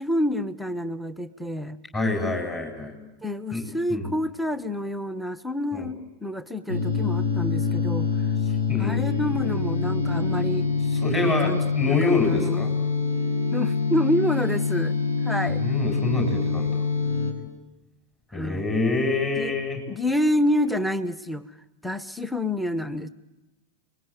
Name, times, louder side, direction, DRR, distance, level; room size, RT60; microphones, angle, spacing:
voice 1, 0.0-1.8 3.2-8.1 8.8-10.7 11.2-12.6 13.5-15.0 15.2-15.6 18.3-18.6 19.4-19.6 19.9-21.6 21.8-23.1, left 1 dB, ahead, 12 dB, 1.0 m, -28 dB
voice 2, 1.9-2.9 3.5-3.6 3.9-4.1 5.7-5.9 8.7-9.0 11.0-12.7 15.6-16.8 18.3-19.8, left 3 dB, 20° left, 4 dB, 7.6 m, -26 dB
sound 1, 6.7-17.3, left 4 dB, 75° left, 5.5 m, -25 dB
29.5 x 21.0 x 9.2 m, 0.99 s
figure-of-eight pair, 90°, 0 cm